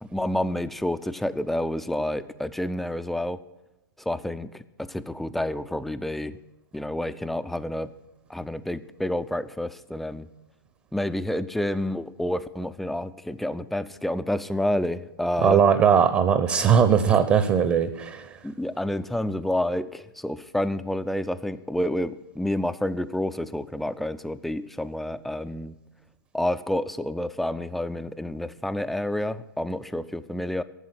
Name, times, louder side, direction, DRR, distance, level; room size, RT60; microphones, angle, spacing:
voice 1, 0.0-3.4 4.0-6.4 6.7-7.9 8.3-10.3 10.9-15.6 18.4-25.7 26.3-30.6, left 1 dB, ahead, 12 dB, 0.4 m, -29 dB
voice 2, 15.4-18.3, right 7 dB, 20° right, 12 dB, 0.7 m, -19 dB
13.0 x 7.5 x 9.8 m, 1.0 s
figure-of-eight pair, 120°, 12 cm